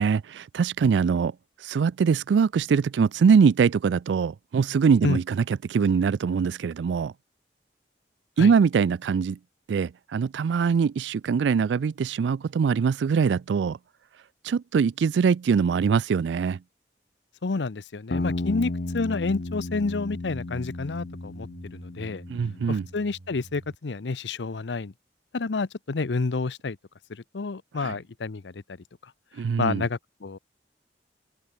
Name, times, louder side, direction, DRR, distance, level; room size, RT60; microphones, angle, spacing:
voice 1, 0.0-7.1 8.4-9.4 9.7-13.8 14.4-16.6 22.3-22.8 27.8-27.9 29.4-29.8, right 6 dB, 85° right, 0.3 m, -23 dB
voice 2, 17.4-22.2 22.7-24.9 25.3-26.8 27.1-28.6 29.0-29.1 29.6-30.4, left 3 dB, 90° left, 0.7 m, -29 dB
sound 1, 18.1-22.8, left 2 dB, 60° left, 0.9 m, -33 dB
sound 2, 18.8-23.8, right 2 dB, 55° right, 0.9 m, -49 dB
open air
head